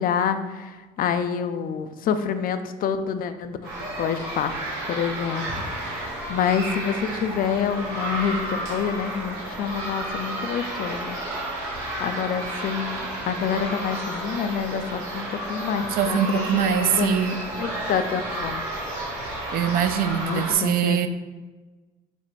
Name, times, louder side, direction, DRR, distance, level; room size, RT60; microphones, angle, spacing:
voice 1, 0.0-4.6 4.9-11.2 12.0-18.6 20.1-21.1, left 7 dB, 50° left, 9 dB, 0.4 m, -27 dB
sound 1, 3.6-20.5, right 1 dB, 80° right, 1.5 m, -31 dB
voice 2, 15.9-17.4 19.5-21.1, right 9 dB, 55° right, 10 dB, 0.4 m, -23 dB
4.1 x 2.1 x 4.5 m, 1.2 s
supercardioid pair, 70°, 19 cm